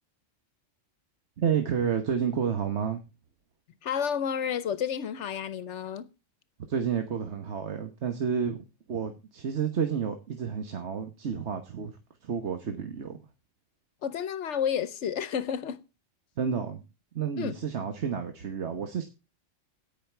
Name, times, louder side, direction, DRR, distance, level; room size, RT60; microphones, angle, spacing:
voice 1, 1.4-3.0 6.7-12.0 12.2-13.2 16.4-16.8 17.1-19.0, right 7 dB, 65° right, 1.4 m, -30 dB
voice 2, 3.8-6.1 14.0-15.8 17.4-17.6, left 8 dB, 70° left, 1.0 m, -31 dB
17.0 x 5.7 x 4.5 m
omnidirectional pair, 1.3 m